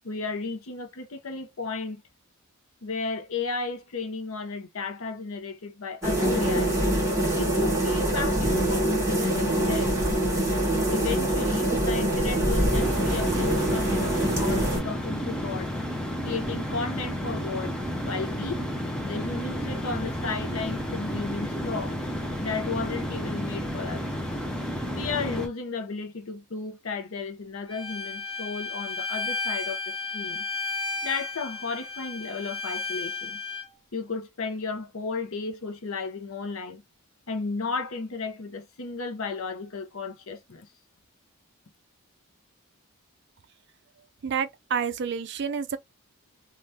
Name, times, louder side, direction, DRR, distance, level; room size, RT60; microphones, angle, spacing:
voice 1, 0.0-2.0 2.8-6.8 7.3-9.9 10.9-15.7 16.2-17.8 18.0-18.7 19.0-22.0 22.4-24.0 24.9-30.4 31.0-33.4 33.9-36.8 37.3-40.7, left 4 dB, 65° left, 0.7 m, -34 dB
sound 1, 6.0-14.8, right 1 dB, 15° right, 1.3 m, -24 dB
sound 2, 12.7-25.5, equal, 5° left, 0.5 m, -32 dB
Bowed string instrument, 27.7-33.6, left 3 dB, 25° left, 1.1 m, -33 dB
voice 2, 44.2-45.8, right 6 dB, 50° right, 0.4 m, -29 dB
3.2 x 2.4 x 2.7 m
head